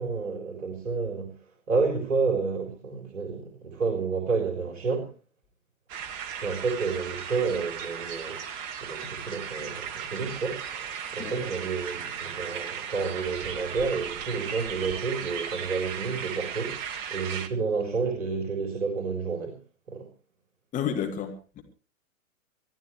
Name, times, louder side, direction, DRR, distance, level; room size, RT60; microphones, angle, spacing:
voice 1, 0.0-1.3 1.7-5.1 6.4-8.5 8.8-16.8 17.1-19.6 19.9-20.1, right 4 dB, 60° right, 2 dB, 4.3 m, -30 dB
sound 1, 5.9-17.5, right 8 dB, 30° right, 1.7 m, -36 dB
voice 2, 20.7-21.6, left 8 dB, 20° left, 4 dB, 2.2 m, -31 dB
23.5 x 14.5 x 3.2 m, 0.36 s
figure-of-eight pair, 115°, 43 cm